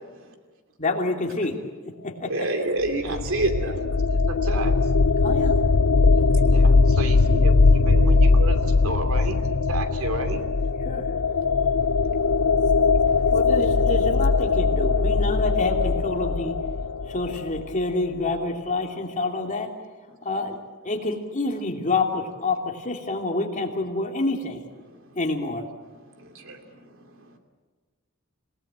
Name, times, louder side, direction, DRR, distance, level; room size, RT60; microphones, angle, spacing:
voice 1, 0.8-1.6 2.0-2.5 5.2-5.6 10.8-11.1 13.3-16.5 17.1-19.7 20.2-20.6 20.8-24.6 25.2-25.7, left 2 dB, 35° left, 2 dB, 3.0 m, -27 dB
voice 2, 2.3-3.8 6.0-6.1 12.1-12.2 12.7-12.9 24.9-25.0 26.2-26.6, right 2 dB, 65° right, 5 dB, 2.8 m, -27 dB
sound 1, 2.8-17.7, left 4 dB, 75° left, 0.7 m, -20 dB
voice 3, 3.8-4.9 6.5-10.5, right 2 dB, 90° right, 7 dB, 2.9 m, -32 dB
27.5 x 18.0 x 9.0 m, 1.4 s
head